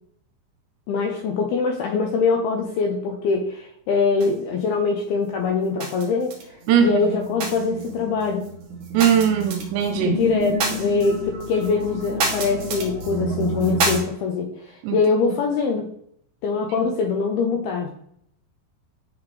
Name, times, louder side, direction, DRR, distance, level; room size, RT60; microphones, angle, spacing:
voice 1, 0.9-8.5 10.0-15.9 16.4-17.9, left 4 dB, 80° left, 2 dB, 2.2 m, -23 dB
sound 1, 4.1-4.9 5.2-6.4 6.7-14.0, right 2 dB, 60° right, 2.1 m, -28 dB
voice 2, 6.7-7.0 8.9-10.2 14.8-15.0, right 8 dB, 80° right, 7 dB, 2.7 m, -19 dB
10.5 x 3.9 x 3.2 m, 0.68 s
omnidirectional pair, 5.3 m